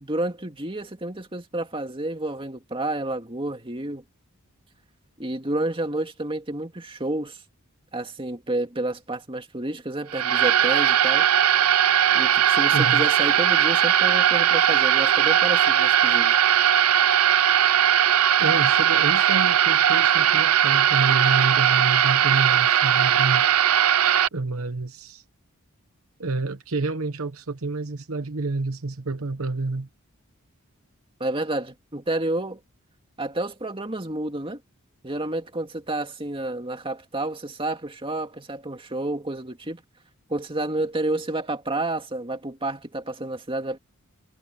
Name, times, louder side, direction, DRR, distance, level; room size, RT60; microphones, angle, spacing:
voice 1, 0.0-4.0 5.2-7.4 7.9-11.3 12.1-16.3 31.2-32.6 33.2-34.6 35.0-39.8 40.3-43.8, right 2 dB, 25° right, 2.3 m, -30 dB
sound 1, 10.1-24.3, right 10 dB, 85° right, 0.7 m, -19 dB
voice 2, 12.7-13.0 18.4-23.5 24.3-25.2 26.2-29.9, right 3 dB, 70° right, 1.1 m, -28 dB
head